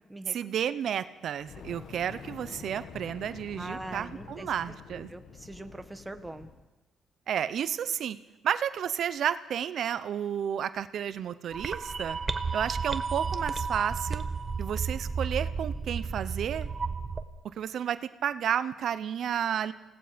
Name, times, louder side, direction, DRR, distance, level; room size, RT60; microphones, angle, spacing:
voice 1, 0.3-5.1 7.3-8.2 8.4-12.2 12.5-14.2 14.6-16.7 17.6-19.7, right 9 dB, 65° right, 13 dB, 0.8 m, -31 dB
Fire, 1.4-6.7, left 6 dB, 65° left, 1.9 m, -47 dB
voice 2, 3.6-4.5 5.1-6.5, right 2 dB, 10° right, 7 dB, 1.6 m, -42 dB
sound 1, 11.5-17.2, right 5 dB, 30° right, 1.1 m, -32 dB
28.0 x 17.5 x 5.2 m, 1.0 s
cardioid pair, 90°, 0 cm